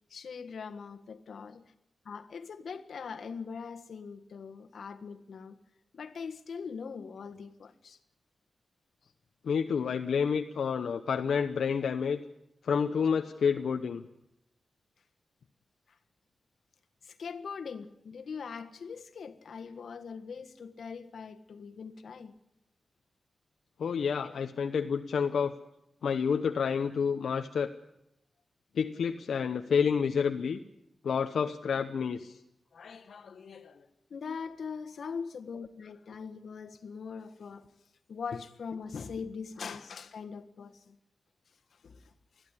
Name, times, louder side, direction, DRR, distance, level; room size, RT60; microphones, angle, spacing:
voice 1, 0.1-1.7 2.0-5.6 5.9-8.0 17.0-22.3 24.2-24.3 32.7-37.7 38.1-41.0 41.8-42.1, left 5 dB, 70° left, 1.6 m, -42 dB
voice 2, 9.4-12.2 12.6-14.0 23.8-25.5 26.0-27.7 28.7-30.6 31.0-32.4 38.3-38.4, left 6 dB, 85° left, 0.9 m, -29 dB
21.0 x 14.5 x 9.9 m
wide cardioid pair, 155°, 0 cm